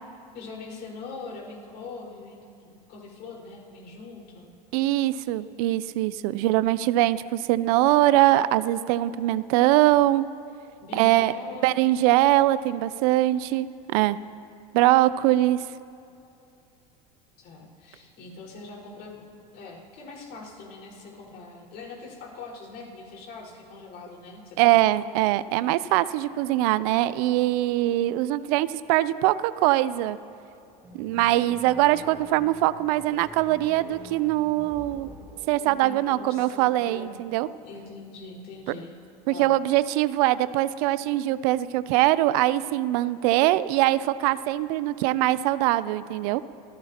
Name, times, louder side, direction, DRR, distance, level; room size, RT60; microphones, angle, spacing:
voice 1, 0.3-4.5 6.3-6.5 10.8-11.7 17.4-19.3 19.5-24.8 35.6-37.1 37.6-38.9 39.3-39.5, left 3 dB, 55° left, -3 dB, 4.8 m, -42 dB
voice 2, 4.7-10.2 10.9-11.3 11.6-14.2 14.7-15.6 24.6-30.2 30.9-35.1 35.5-37.5 38.7-38.8 39.3-46.4, right 15 dB, 70° right, 16 dB, 0.5 m, -22 dB
sound 1, 30.7-36.4, right 1 dB, 10° right, 4.1 m, -47 dB
25.0 x 16.5 x 2.9 m, 2.6 s
supercardioid pair, 110°, 20 cm